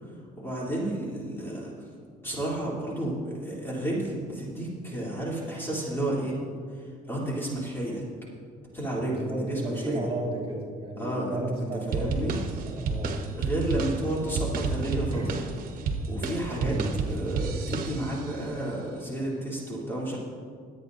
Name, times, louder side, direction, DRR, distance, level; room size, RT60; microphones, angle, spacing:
voice 1, 0.4-1.7 2.2-6.4 6.7-8.0 8.7-10.1 11.0-11.4 11.9-12.4 13.4-15.2 16.1-16.8 17.1-20.2, right 1 dB, 15° left, -5 dB, 3.1 m, -31 dB
voice 2, 9.0-13.2 15.1-15.4 16.6-17.0, right 2 dB, 35° right, -5 dB, 2.9 m, -33 dB
sound 1, 11.9-18.3, right 4 dB, 55° right, 1.2 m, -31 dB
21.5 x 8.6 x 2.7 m, 2.2 s
cardioid pair, 110°, 17 cm